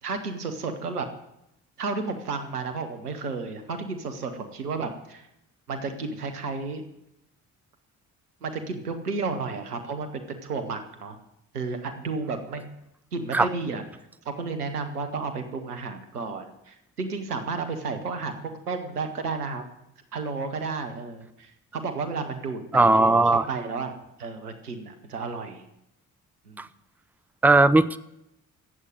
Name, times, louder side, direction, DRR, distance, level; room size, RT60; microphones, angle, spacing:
voice 1, 0.0-1.1 1.8-5.3 5.7-6.8 8.4-11.2 11.5-12.7 13.1-13.8 14.2-19.6 20.1-23.9 24.2-25.6 26.5-26.6, right 4 dB, 90° right, 7 dB, 1.2 m, -32 dB
voice 2, 22.7-23.4 26.6-26.7 27.4-28.0, right 2 dB, 5° right, 13 dB, 0.7 m, -18 dB
13.5 x 8.3 x 9.0 m, 0.84 s
figure-of-eight pair, 45°, 45 cm